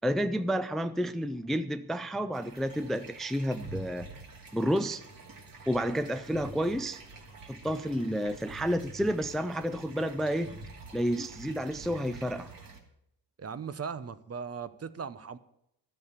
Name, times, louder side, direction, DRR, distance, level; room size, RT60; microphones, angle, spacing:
voice 1, 0.0-4.1 4.5-5.0 5.7-7.0 7.5-10.6 10.9-12.5, equal, ahead, 0.4 m, -30 dB
sound 1, 2.3-12.8, right 2 dB, 60° right, 2.8 m, -47 dB
voice 2, 13.4-15.4, right 6 dB, 40° right, 0.8 m, -38 dB
12.5 x 7.0 x 9.6 m
wide cardioid pair, 120°, 39 cm